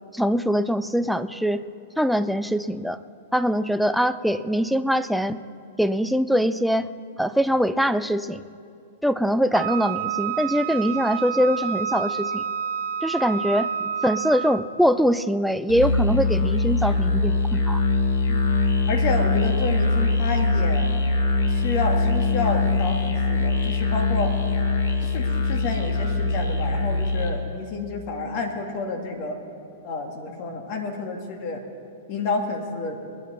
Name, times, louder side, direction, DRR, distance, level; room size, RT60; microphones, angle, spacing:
voice 1, 0.1-1.7 2.0-3.0 3.3-5.4 5.8-6.9 7.2-8.4 9.0-12.4 13.0-17.8, equal, ahead, 14 dB, 0.4 m, -23 dB
Wind instrument woodwind instrument, 9.5-14.7, right 8 dB, 70° right, 0.6 m, -29 dB
Musical instrument, 15.7-27.4, left 2 dB, 80° left, 1.4 m, -22 dB
voice 2, 18.9-20.9 21.5-24.3 25.0-29.4 29.8-31.6 32.1-33.0, left 4 dB, 50° left, 4 dB, 2.0 m, -29 dB
20.5 x 10.0 x 4.3 m, 2.4 s
hypercardioid pair, 120°, 0 cm